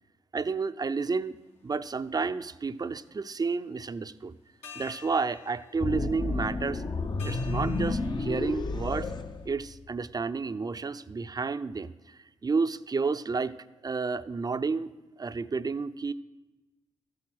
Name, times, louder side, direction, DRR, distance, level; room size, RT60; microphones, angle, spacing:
voice 1, 0.3-1.4 1.6-4.3 4.7-6.8 7.2-9.1 9.4-13.6 13.8-14.9 15.2-16.1, right 4 dB, 35° right, 12 dB, 0.6 m, -31 dB
sound 1, 0.9-1.0 1.7-2.7 4.2-4.3 4.6-9.5, left 5 dB, 75° left, 2.1 m, -51 dB
sound 2, 5.8-10.1, left 3 dB, 40° left, 0.8 m, -31 dB
14.0 x 8.7 x 6.1 m, 1.1 s
supercardioid pair, 55°, 11 cm